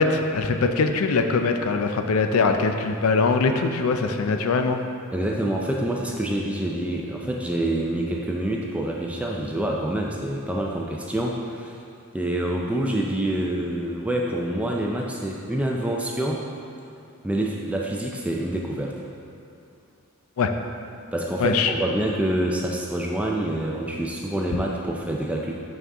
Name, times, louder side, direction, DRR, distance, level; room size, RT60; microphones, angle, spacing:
voice 1, 0.0-4.8 20.4-20.5 21.4-21.7, left 4 dB, 70° left, 6 dB, 0.4 m, -22 dB
voice 2, 5.1-11.8 12.1-16.4 17.2-18.9 21.1-25.5, right 1 dB, 5° right, -2 dB, 0.4 m, -26 dB
5.7 x 5.4 x 3.6 m, 2.6 s
head